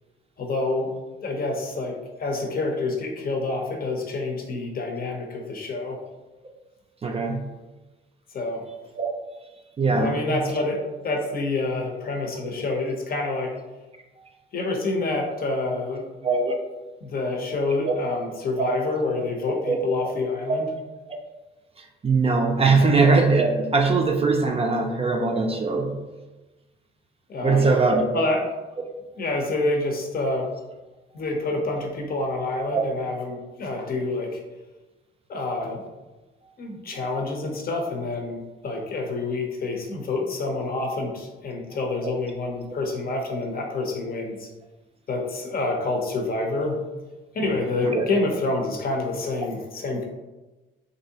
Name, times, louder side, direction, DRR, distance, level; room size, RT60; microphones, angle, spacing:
voice 1, 0.4-0.9 1.2-6.0 8.3-8.6 9.9-13.5 14.5-16.1 17.0-20.7 22.8-23.0 27.3-27.8 28.1-28.4 29.1-30.5 31.1-34.4 35.3-35.8 36.6-44.5 45.1-46.8 47.3-50.0, left 2 dB, 50° left, 1 dB, 0.7 m, -27 dB
voice 2, 7.0-7.5 9.0-9.1 9.8-10.4 16.2-16.5 17.9-18.0 18.6-18.8 19.7-19.8 20.5-20.6 21.8-26.0 27.4-28.2 32.7-32.8 42.0-42.1 47.8-48.0, right 4 dB, 30° right, 2 dB, 0.4 m, -21 dB
3.1 x 2.6 x 2.8 m, 1.1 s
cardioid pair, 90°, 20 cm